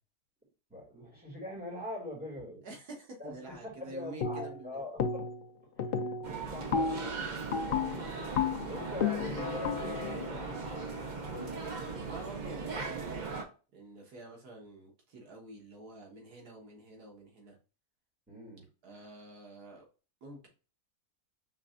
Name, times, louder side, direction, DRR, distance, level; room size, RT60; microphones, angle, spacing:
voice 1, 0.7-2.6 3.2-5.2 5.6-7.2 8.7-10.4 18.3-18.6, left 1 dB, 5° right, -4 dB, 2.2 m, -43 dB
voice 2, 2.6-4.9 11.3-13.3 13.7-17.6 18.8-19.9 20.2-20.5, right 2 dB, 80° right, 0 dB, 1.9 m, -48 dB
sound 1, 4.2-4.7 5.0-5.5 5.8-11.6, left 6 dB, 80° left, 0.5 m, -34 dB
sound 2, 6.2-13.4, right 4 dB, 40° right, 0.7 m, -39 dB
5.8 x 3.3 x 2.4 m, 0.34 s
omnidirectional pair, 1.6 m